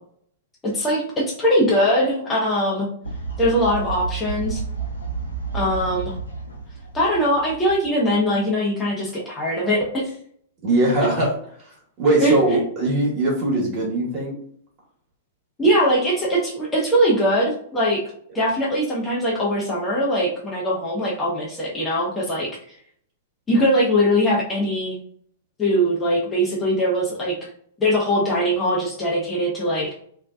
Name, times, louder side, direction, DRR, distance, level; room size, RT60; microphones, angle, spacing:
voice 1, 0.6-2.9 3.4-4.6 5.5-6.2 6.9-10.1 12.2-12.4 15.6-18.0 18.3-22.5 23.5-25.0 25.6-27.4 27.8-29.9, equal, 20° left, -4 dB, 0.7 m, -21 dB
Fowl, 3.0-8.3, right 5 dB, 90° left, 0.6 m, -31 dB
voice 2, 10.6-11.4 12.0-14.3, right 2 dB, 40° right, -4 dB, 1.3 m, -20 dB
2.6 x 2.1 x 2.3 m, 0.62 s
hypercardioid pair, 105°, 0 cm